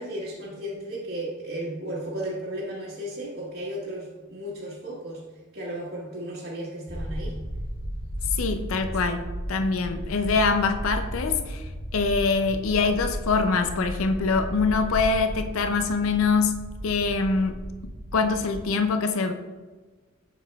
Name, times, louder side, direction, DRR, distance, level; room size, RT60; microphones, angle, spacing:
voice 1, 0.0-5.2 5.5-7.3, right 1 dB, 60° right, -7 dB, 1.4 m, -34 dB
sound 1, 6.9-18.6, equal, 25° right, 1.3 m, -34 dB
voice 2, 8.3-9.2 9.5-17.6 18.1-19.3, left 4 dB, 85° left, 7 dB, 0.5 m, -24 dB
7.1 x 6.8 x 2.3 m, 1.3 s
head